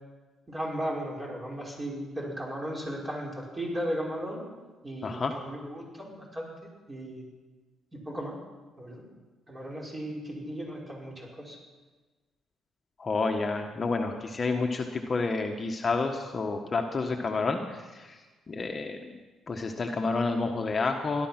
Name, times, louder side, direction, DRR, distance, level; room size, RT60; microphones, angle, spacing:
voice 1, 0.5-4.5 4.8-6.5 6.9-7.3 7.9-8.4 8.8-9.0 9.5-11.6, equal, 20° right, -3 dB, 5.4 m, -36 dB
voice 2, 5.0-5.3 13.0-18.2 18.5-19.0 19.5-21.3, left 3 dB, 35° left, 3 dB, 1.4 m, -29 dB
17.0 x 11.5 x 6.0 m, 1.3 s
cardioid pair, 90°, 0 cm